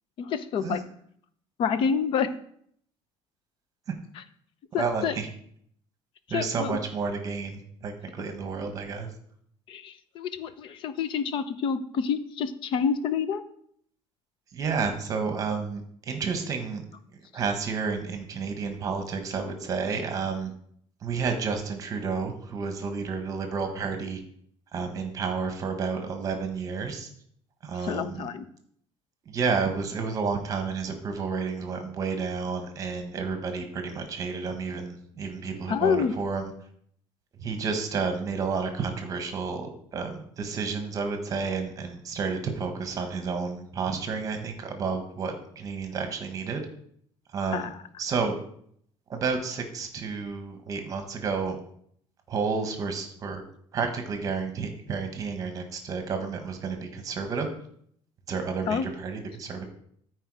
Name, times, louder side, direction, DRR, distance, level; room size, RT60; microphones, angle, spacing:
voice 1, 0.2-0.8 1.6-2.3 4.7-5.2 6.3-6.8 9.7-13.4 27.8-28.4 35.7-36.1 47.5-47.7 58.7-58.9, left 6 dB, 50° left, 12 dB, 0.7 m, -28 dB
voice 2, 4.8-5.3 6.3-9.1 14.5-16.8 17.1-20.5 21.0-24.2 24.7-27.1 27.6-28.3 29.2-36.5 37.4-46.6 47.3-47.7 48.0-48.4 49.1-51.6 52.3-53.4 53.7-57.5 58.3-59.6, right 5 dB, 35° right, 6 dB, 1.3 m, -31 dB
13.5 x 4.7 x 4.8 m, 0.66 s
cardioid pair, 170°, 11 cm